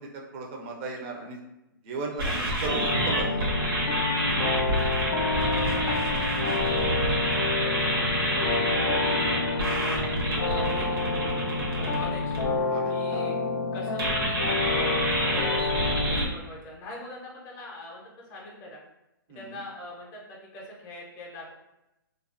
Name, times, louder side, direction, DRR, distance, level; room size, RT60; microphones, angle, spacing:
voice 1, 0.0-1.4 1.8-3.5 12.7-13.4 19.3-19.6, right 3 dB, 30° right, 0 dB, 0.4 m, -36 dB
sound 1, 2.2-12.4 14.0-16.3, right 1 dB, 90° right, 0.8 m, -28 dB
sound 2, 2.6-16.2, left 4 dB, 80° left, 0.5 m, -29 dB
voice 2, 5.3-6.0 6.6-11.1 11.7-12.4 12.9-13.3 13.7-14.9 15.3-18.0 18.3-18.8 19.3-21.5, left 1 dB, 25° left, -3 dB, 0.5 m, -42 dB
2.3 x 2.3 x 2.4 m, 0.93 s
hypercardioid pair, 140°, 12 cm